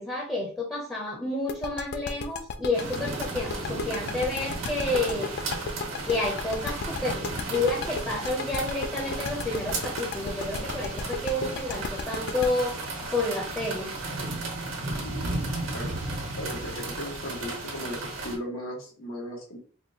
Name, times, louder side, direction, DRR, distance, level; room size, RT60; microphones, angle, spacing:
voice 1, 0.0-5.3 6.1-12.8 13.1-13.9, left 2 dB, 10° left, -2 dB, 0.6 m, -30 dB
sound 1, 1.5-14.2, left 4 dB, 55° left, 0.3 m, -34 dB
sound 2, 2.7-18.4, right 2 dB, 90° right, 1.2 m, -34 dB
voice 2, 14.8-16.0 16.3-19.6, equal, 85° left, -1 dB, 1.4 m, -37 dB
4.1 x 2.4 x 2.7 m, 0.42 s
head